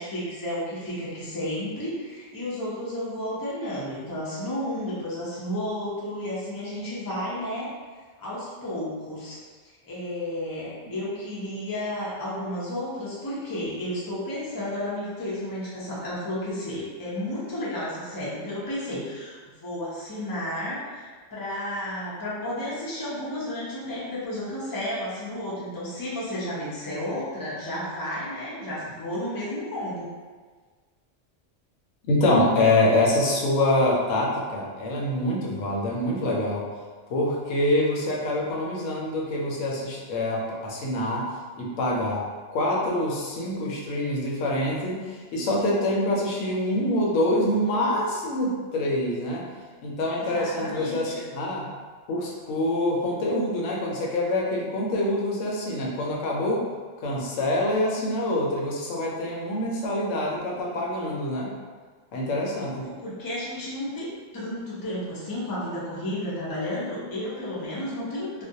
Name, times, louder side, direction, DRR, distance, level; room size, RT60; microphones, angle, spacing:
voice 1, 0.0-7.7 8.2-9.4 9.6-30.1 50.1-51.2 62.8-68.4, left 1 dB, 30° left, -7 dB, 0.4 m, -32 dB
voice 2, 32.1-36.7 37.1-41.2 41.6-42.2 42.5-45.0 45.3-49.4 49.8-51.7 52.1-56.6 57.0-61.5 62.1-62.9, left 1 dB, 85° left, -3 dB, 1.0 m, -25 dB
2.4 x 2.1 x 2.6 m, 1.5 s
omnidirectional pair, 1.3 m